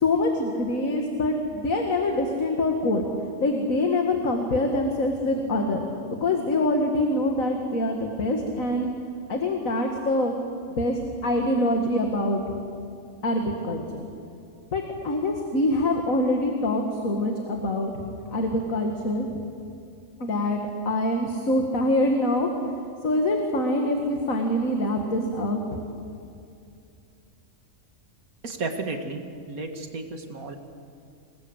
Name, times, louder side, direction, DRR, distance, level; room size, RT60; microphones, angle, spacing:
voice 1, 0.0-3.1 3.4-5.9 6.2-8.9 9.3-10.3 10.7-12.4 13.2-14.1 14.7-17.9 18.3-19.4 20.2-22.7 23.0-25.8, left 1 dB, 70° left, 2 dB, 2.3 m, -25 dB
voice 2, 28.4-30.6, right 3 dB, 80° right, 5 dB, 2.4 m, -33 dB
28.0 x 20.5 x 8.0 m, 2.4 s
omnidirectional pair, 1.5 m